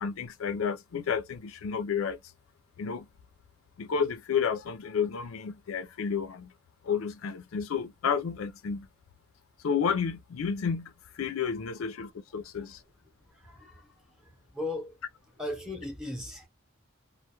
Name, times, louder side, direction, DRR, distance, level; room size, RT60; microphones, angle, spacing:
voice 1, 0.0-2.2 2.8-3.1 3.8-6.5 6.8-8.9 9.6-12.8, left 6 dB, 80° left, 0.4 m, -31 dB
voice 2, 13.2-15.0 15.4-16.5, left 2 dB, 5° right, 0.7 m, -38 dB
2.2 x 2.0 x 2.8 m
head